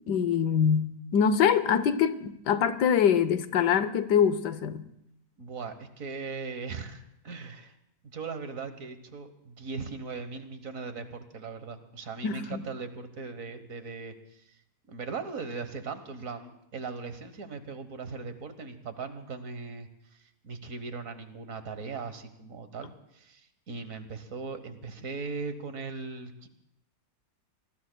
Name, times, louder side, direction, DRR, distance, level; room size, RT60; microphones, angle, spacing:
voice 1, 0.1-4.8 12.2-12.6, left 7 dB, 85° left, 13 dB, 1.4 m, -24 dB
voice 2, 5.4-7.7 8.0-14.5 14.9-26.5, right 4 dB, 55° right, 9 dB, 1.5 m, -39 dB
26.0 x 20.0 x 2.2 m, 0.81 s
omnidirectional pair, 1.7 m